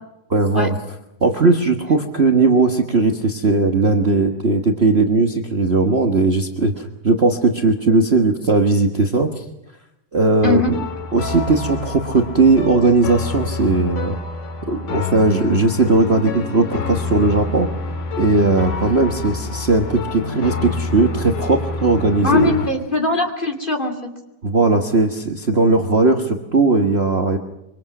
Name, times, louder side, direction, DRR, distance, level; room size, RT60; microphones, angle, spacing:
voice 1, 0.3-0.7 1.2-9.4 10.1-10.6 11.1-14.2 14.7-17.7 18.2-22.5 24.4-27.4, right 3 dB, 60° right, 4 dB, 0.6 m, -17 dB
sound 1, 10.4-22.7, left 4 dB, 90° left, 4.2 m, -27 dB
voice 2, 22.2-24.1, left 2 dB, 15° left, 4 dB, 2.6 m, -20 dB
26.5 x 24.5 x 6.0 m, 0.85 s
omnidirectional pair, 3.5 m